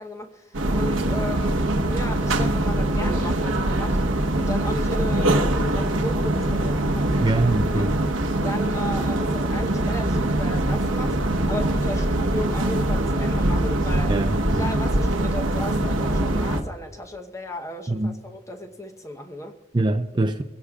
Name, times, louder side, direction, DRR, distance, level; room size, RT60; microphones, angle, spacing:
voice 1, 0.0-7.4 7.7-8.0 8.4-14.2 14.6-19.6, left 1 dB, 15° left, 0.9 m, -35 dB
sound 1, 0.5-16.6, right 1 dB, 90° right, 1.1 m, -23 dB
voice 2, 7.2-8.0 14.1-14.7 17.9-18.1 19.7-20.4, right 2 dB, 25° right, 0.5 m, -23 dB
25.5 x 16.0 x 2.4 m
head